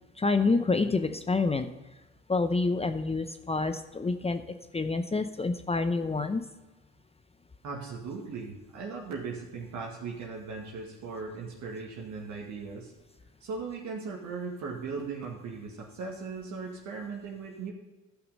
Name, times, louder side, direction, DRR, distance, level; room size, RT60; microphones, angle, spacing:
voice 1, 0.2-1.7 2.3-4.4 4.7-6.4, left 3 dB, 20° left, 9 dB, 0.7 m, -27 dB
voice 2, 7.6-12.9 13.4-17.7, right 4 dB, 60° right, -2 dB, 1.9 m, -38 dB
12.5 x 5.8 x 5.4 m, 1.1 s
hypercardioid pair, 65°, 33 cm